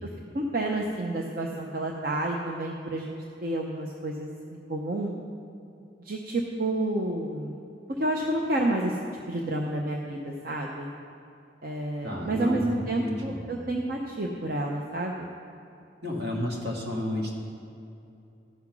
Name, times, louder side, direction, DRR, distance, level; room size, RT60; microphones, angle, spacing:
voice 1, 0.3-3.1 3.4-5.1 6.0-7.6 8.0-10.9 11.6-15.3, right 1 dB, 50° right, 0 dB, 0.7 m, -30 dB
voice 2, 12.0-13.3 16.0-17.3, left 1 dB, 70° right, -2 dB, 2.0 m, -31 dB
14.0 x 5.8 x 6.0 m, 2.7 s
head